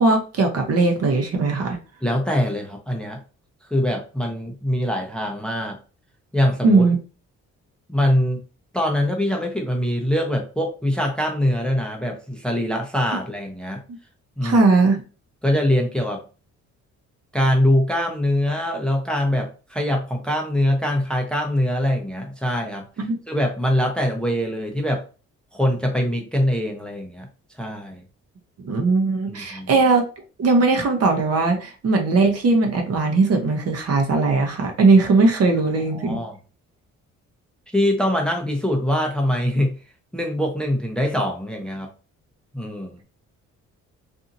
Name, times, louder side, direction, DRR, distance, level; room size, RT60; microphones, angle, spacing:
voice 1, 0.0-1.8 6.6-7.0 14.4-15.0 23.1-23.2 28.6-30.1 30.4-36.2, right 3 dB, 55° right, 3 dB, 0.9 m, -19 dB
voice 2, 2.0-3.2 3.7-5.8 6.3-6.8 7.9-8.4 8.7-13.8 14.4-14.6 15.4-16.2 17.3-22.9 23.3-25.0 25.5-27.3 27.6-28.0 29.3-29.7 35.9-36.4 37.7-39.7 40.1-41.9 42.5-43.0, left 1 dB, 5° left, 1 dB, 0.6 m, -23 dB
2.7 x 2.6 x 2.5 m, 0.34 s
cardioid pair, 90°, 30 cm